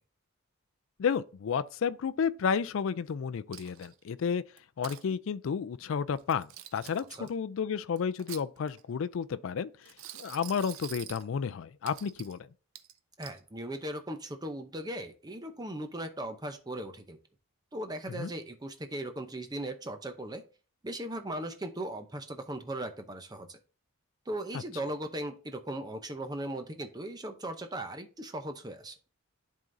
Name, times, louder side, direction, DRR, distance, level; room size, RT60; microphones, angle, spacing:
voice 1, 1.0-4.4 4.8-9.7 10.1-12.4 18.1-18.3, left 6 dB, 65° left, 0.3 m, -31 dB
Coin (dropping), 3.5-4.1 4.6-5.0 6.2-7.3 8.0-8.9 9.8-11.3 11.9-12.4 12.7-13.4, right 12 dB, 70° right, 0.5 m, -46 dB
voice 2, 13.2-17.2 17.7-20.4 20.8-23.6 24.3-28.9, right 1 dB, 20° right, 0.6 m, -38 dB
10.5 x 3.7 x 2.6 m
head